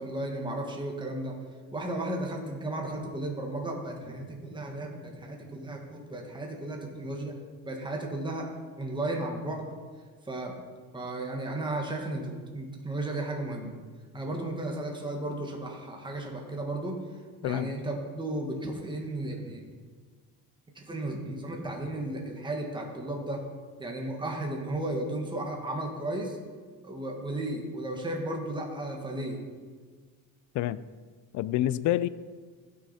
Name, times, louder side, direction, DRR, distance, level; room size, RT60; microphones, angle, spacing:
voice 1, 0.0-1.4 1.7-7.4 7.6-8.5 8.8-9.7 10.2-10.5 10.9-13.7 14.1-17.1 17.4-19.7 20.7-23.4 23.8-26.4 26.8-29.4, right 1 dB, 10° right, 1 dB, 1.6 m, -34 dB
voice 2, 17.4-17.7 30.5-30.8 31.3-32.1, left 13 dB, 50° left, 17 dB, 0.5 m, -27 dB
16.0 x 6.4 x 4.3 m, 1.5 s
cardioid pair, 120°, 37 cm